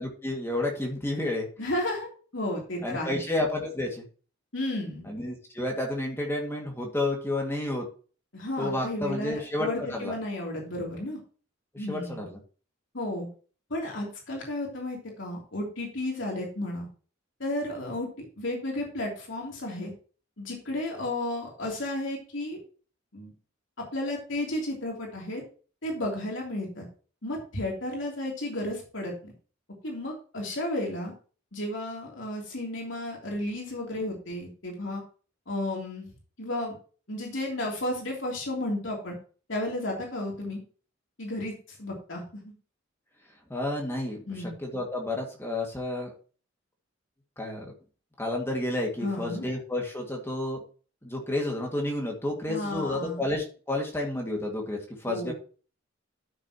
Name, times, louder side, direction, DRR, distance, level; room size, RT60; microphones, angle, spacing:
voice 1, 0.0-1.5 2.8-4.0 5.0-7.9 8.6-10.1 11.7-12.4 43.5-44.3 44.6-46.1 47.4-47.7 48.2-50.6 51.0-55.3, left 1 dB, 15° left, 0 dB, 2.1 m, -31 dB
voice 2, 1.6-2.1 2.3-3.2 4.5-5.1 8.3-11.2 11.8-12.2 12.9-13.3 13.7-16.9 17.4-19.9 20.4-22.6 23.1-23.3 23.9-25.4 25.8-26.9 27.2-29.3 29.8-31.1 31.5-35.0 35.5-36.1 36.4-36.8 37.1-39.1 39.5-40.6 41.2-42.5 44.3-44.5 49.0-49.5 52.5-53.2 55.1-55.3, left 1 dB, 70° left, -1 dB, 3.2 m, -33 dB
13.0 x 6.5 x 3.0 m, 0.38 s
head